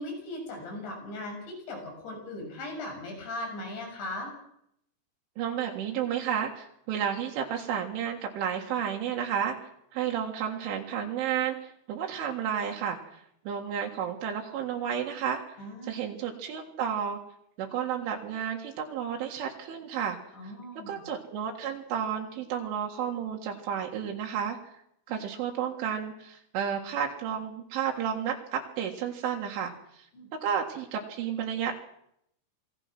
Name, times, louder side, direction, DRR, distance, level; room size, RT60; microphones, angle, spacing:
voice 1, 0.0-4.3 15.6-15.9 20.3-21.0 30.1-30.3, left 1 dB, 65° left, 2 dB, 9.1 m, -38 dB
voice 2, 5.4-9.6 9.9-15.6 15.8-17.2 17.6-20.2 20.4-20.5 20.9-24.6 25.1-30.1 30.4-31.8, right 8 dB, 80° right, 0 dB, 4.3 m, -32 dB
27.0 x 20.5 x 6.1 m, 0.73 s
omnidirectional pair, 5.5 m